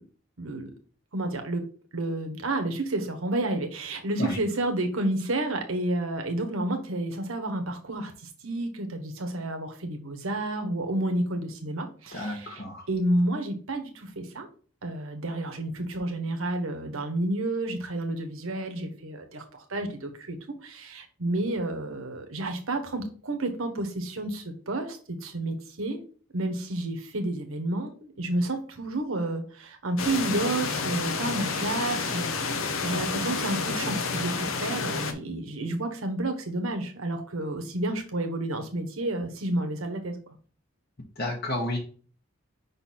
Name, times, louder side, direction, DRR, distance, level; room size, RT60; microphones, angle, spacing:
voice 1, 0.4-0.7 1.1-1.6 1.9-14.5 14.8-20.4 20.6-26.0 26.3-40.2, right 1 dB, 85° right, 5 dB, 1.2 m, -30 dB
voice 2, 12.1-12.9 41.2-41.8, left 1 dB, 50° left, -2 dB, 1.1 m, -31 dB
sound 1, 30.0-35.1, left 4 dB, 80° left, 0.8 m, -30 dB
5.6 x 4.0 x 4.2 m, 0.41 s
head